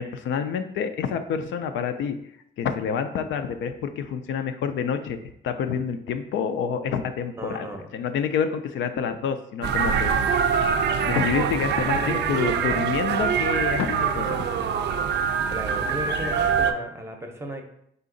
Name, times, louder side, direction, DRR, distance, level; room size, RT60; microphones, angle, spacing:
voice 1, 0.0-2.2 2.6-5.2 5.4-7.7 7.9-10.5 11.0-14.5, left 7 dB, 75° left, 8 dB, 0.4 m, -28 dB
voice 2, 7.4-7.9 11.9-12.9 15.5-17.6, right 1 dB, 15° right, 3 dB, 0.7 m, -35 dB
sound 1, 9.6-16.7, right 7 dB, 60° right, 0.4 m, -24 dB
3.8 x 2.5 x 3.8 m, 0.73 s
cardioid pair, 90°, 20 cm